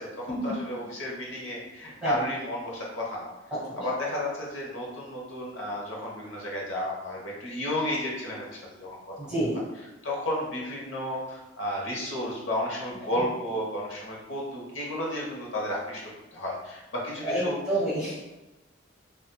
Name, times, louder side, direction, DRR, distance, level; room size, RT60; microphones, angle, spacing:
voice 1, 0.0-3.3 3.7-9.0 9.2-9.3 10.0-16.0 16.3-17.6, left 1 dB, 75° left, -3 dB, 1.0 m, -32 dB
voice 2, 9.2-9.6 17.2-18.2, right 1 dB, 5° right, -12 dB, 1.2 m, -29 dB
4.0 x 2.5 x 2.3 m, 1.0 s
head